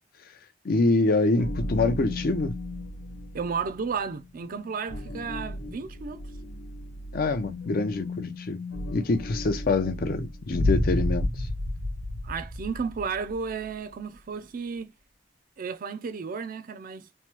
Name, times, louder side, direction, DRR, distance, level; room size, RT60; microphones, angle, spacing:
voice 1, 0.6-2.5 7.1-8.6 8.9-11.5, left 3 dB, 50° left, 0.5 m, -25 dB
sound 1, 1.4-10.6, left 2 dB, 80° left, 0.8 m, -37 dB
voice 2, 3.3-6.2 12.2-14.9 15.6-17.1, right 5 dB, 45° right, 0.4 m, -33 dB
sound 2, 10.5-13.5, left 1 dB, 85° right, 0.9 m, -28 dB
3.1 x 2.1 x 2.9 m
head